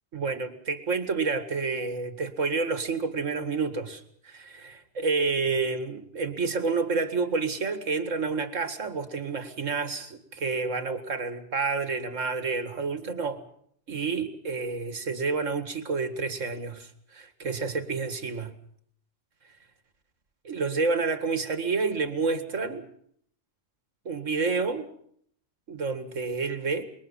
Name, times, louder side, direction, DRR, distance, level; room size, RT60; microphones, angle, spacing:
voice 1, 0.1-13.4 13.9-18.6 20.4-22.9 24.1-24.9 25.7-26.8, right 4 dB, 80° right, 8 dB, 2.3 m, -29 dB
26.0 x 22.5 x 5.6 m, 0.66 s
omnidirectional pair, 1.3 m